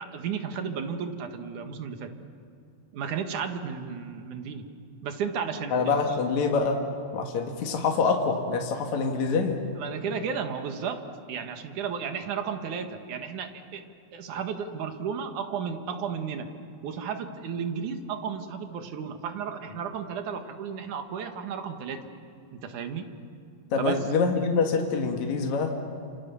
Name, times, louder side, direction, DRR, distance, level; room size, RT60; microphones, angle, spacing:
voice 1, 0.0-2.1 2.9-4.6 5.0-6.0 9.8-11.0 11.3-13.8 14.1-16.5 16.8-22.0 22.5-23.1 23.8-24.0, right 6 dB, 85° right, 7 dB, 3.1 m, -33 dB
voice 2, 5.7-6.8 7.1-9.6 23.7-25.7, left 4 dB, 70° left, 2 dB, 3.0 m, -25 dB
29.5 x 27.5 x 7.0 m, 2.5 s
omnidirectional pair, 3.4 m